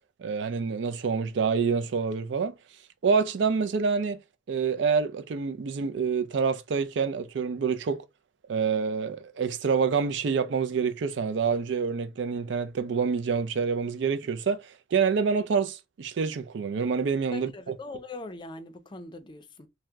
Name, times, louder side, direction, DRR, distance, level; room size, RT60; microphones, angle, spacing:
voice 1, 0.2-2.5 3.0-4.2 4.5-8.0 8.5-17.5, right 5 dB, 75° right, 0.4 m, -27 dB
voice 2, 17.3-19.7, left 2 dB, 25° left, 0.4 m, -41 dB
2.7 x 2.1 x 3.4 m
head